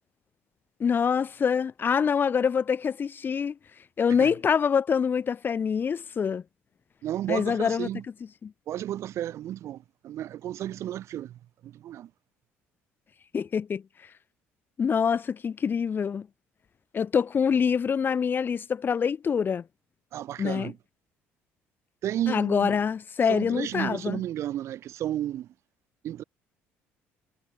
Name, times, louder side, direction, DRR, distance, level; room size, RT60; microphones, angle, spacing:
voice 1, 0.8-3.5 4.0-6.4 7.3-7.9 8.4-8.5 13.3-13.8 14.8-16.3 16.9-19.6 20.4-20.7 22.3-24.2, left 6 dB, 40° left, 7.6 m, -25 dB
voice 2, 7.0-8.0 8.7-12.1 20.1-20.8 22.0-22.8 23.3-25.5 26.0-26.2, right 12 dB, 65° right, 6.3 m, -33 dB
supercardioid pair, 90°, 5 cm